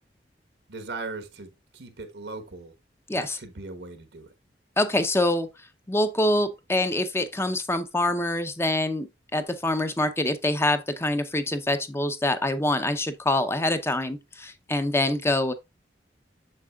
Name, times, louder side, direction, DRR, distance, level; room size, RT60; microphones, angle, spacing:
voice 1, 0.7-2.7 3.1-4.3, right 3 dB, 85° right, 1.2 m, -39 dB
voice 2, 4.8-5.5 5.9-15.5, left 1 dB, 15° left, 0.6 m, -25 dB
7.4 x 6.5 x 2.3 m
head